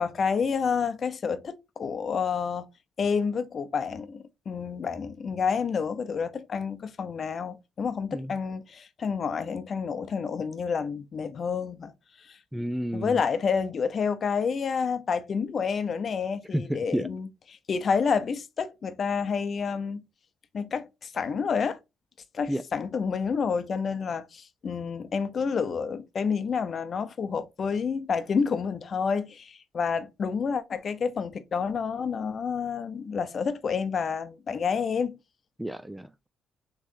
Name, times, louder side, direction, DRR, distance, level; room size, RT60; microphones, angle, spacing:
voice 1, 0.0-2.7 3.0-11.9 12.3-12.4 12.9-20.0 20.5-21.8 22.3-35.2, left 6 dB, 50° left, 0.6 m, -29 dB
voice 2, 12.5-13.2 16.5-17.1 22.5-22.6 35.6-36.3, equal, 5° right, 0.4 m, -31 dB
6.3 x 3.1 x 2.6 m
cardioid pair, 90°, 0 cm